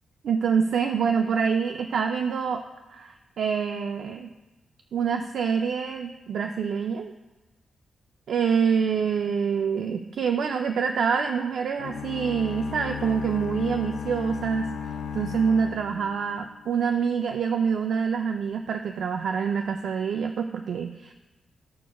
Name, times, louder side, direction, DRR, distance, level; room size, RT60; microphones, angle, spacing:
voice 1, 0.2-2.6 2.9-4.3 4.9-7.1 8.3-14.7 15.1-21.1, right 6 dB, 65° right, 5 dB, 0.4 m, -26 dB
sound 1, 11.8-16.8, left 6 dB, 85° left, 0.5 m, -35 dB
15.0 x 6.1 x 2.3 m, 1.1 s
wide cardioid pair, 170°, 0 cm